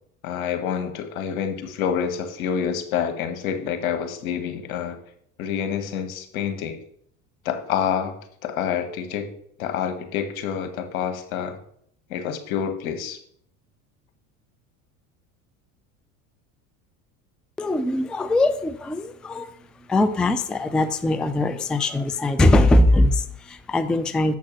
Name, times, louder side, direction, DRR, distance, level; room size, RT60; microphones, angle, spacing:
voice 1, 0.2-5.0 5.4-6.8 7.4-8.2 8.4-9.3 9.6-11.6 12.1-13.2, left 8 dB, 80° left, 6 dB, 1.5 m, -27 dB
voice 2, 17.6-24.4, left 1 dB, ahead, 11 dB, 0.3 m, -21 dB
7.5 x 4.7 x 6.2 m, 0.67 s
hypercardioid pair, 90°, 42 cm